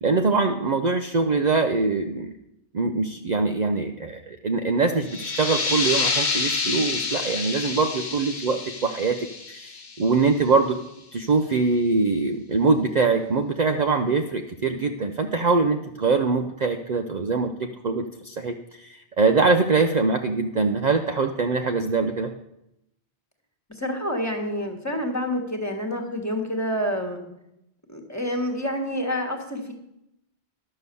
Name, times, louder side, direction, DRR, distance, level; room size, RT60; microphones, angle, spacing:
voice 1, 0.0-2.3 2.7-9.2 9.5-10.8 11.1-22.3, right 4 dB, 45° right, 5 dB, 0.7 m, -23 dB
sound 1, 5.0-10.4, left 4 dB, 80° left, 1.5 m, -28 dB
voice 2, 23.7-27.3 27.9-29.7, equal, 15° left, 2 dB, 1.5 m, -28 dB
11.0 x 6.7 x 6.8 m, 0.84 s
omnidirectional pair, 1.1 m